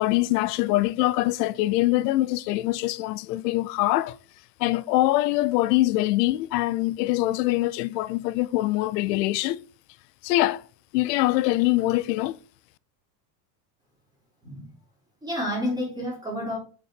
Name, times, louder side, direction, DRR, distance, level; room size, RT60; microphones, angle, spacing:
voice 1, 0.0-4.2 4.6-9.7 10.2-10.6 10.9-12.4, left 17 dB, 85° left, 0.6 m, -23 dB
voice 2, 15.2-16.6, left 1 dB, 10° right, 3.3 m, -29 dB
6.9 x 4.3 x 4.4 m
supercardioid pair, 100°, 47 cm